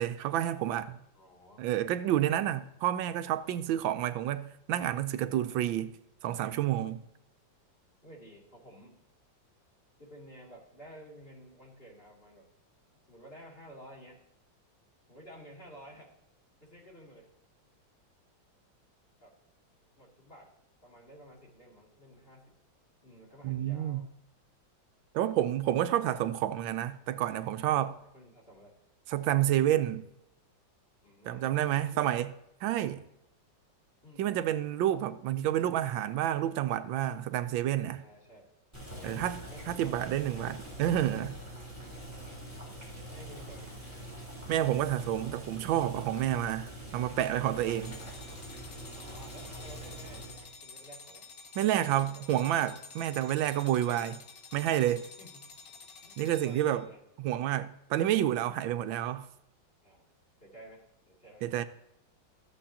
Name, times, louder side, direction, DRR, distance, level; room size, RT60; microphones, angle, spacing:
voice 1, 0.0-1.0 1.6-6.0 6.2-7.0 23.4-24.0 25.1-27.9 29.1-30.1 31.3-32.3 32.6-33.0 34.2-38.0 39.0-39.4 39.7-41.4 44.5-48.0 51.6-54.2 54.5-55.1 56.2-56.9 57.2-59.3 61.4-61.6, right 12 dB, 85° right, 1.4 m, -29 dB
voice 2, 1.1-1.6 5.3-5.6 8.0-9.0 10.0-12.5 13.1-14.2 15.1-16.1 16.6-17.3 19.2-19.3 20.0-20.5 20.8-22.5 23.0-24.1 25.8-26.2 27.6-28.8 31.0-32.2 34.0-34.6 38.0-38.5 39.0-40.4 43.1-43.8 48.8-51.3 51.6-52.2 55.2-55.5 56.0-57.0 59.8-60.0 60.4-61.5, equal, 30° left, 2.7 m, -53 dB
Boiling, 38.7-50.5, right 1 dB, 10° left, 3.8 m, -44 dB
sound 1, 47.8-56.9, left 5 dB, 50° left, 1.2 m, -50 dB
14.0 x 7.5 x 2.8 m
omnidirectional pair, 2.1 m